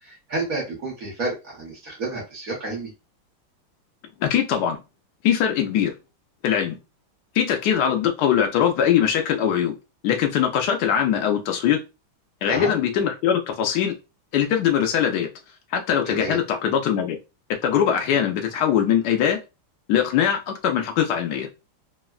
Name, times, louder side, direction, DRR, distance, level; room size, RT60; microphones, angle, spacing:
voice 1, 0.0-2.9 12.5-12.7 16.0-16.4, right 2 dB, 50° right, -4 dB, 1.1 m, -30 dB
voice 2, 4.2-4.8 5.2-5.9 6.4-6.8 7.3-9.7 10.0-11.8 12.4-13.9 14.3-15.3 15.7-17.2 17.6-19.4 19.9-21.5, left 9 dB, 85° left, 4 dB, 0.9 m, -21 dB
3.5 x 2.1 x 2.3 m, 0.27 s
omnidirectional pair, 2.4 m